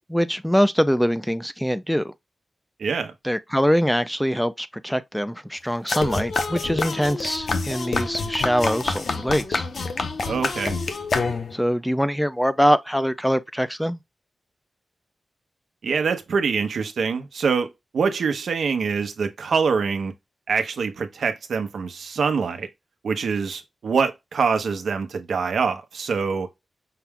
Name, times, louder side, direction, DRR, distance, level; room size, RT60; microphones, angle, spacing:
voice 1, 0.1-2.1 3.2-9.7 11.5-14.0, equal, ahead, 0.3 m, -23 dB
voice 2, 2.8-3.1 10.2-10.8 15.8-20.1 20.5-22.7 23.0-26.5, right 5 dB, 80° right, 0.9 m, -24 dB
sound 1, 5.9-11.7, left 4 dB, 55° left, 0.8 m, -27 dB
5.8 x 2.3 x 3.6 m
wide cardioid pair, 155°, 0 cm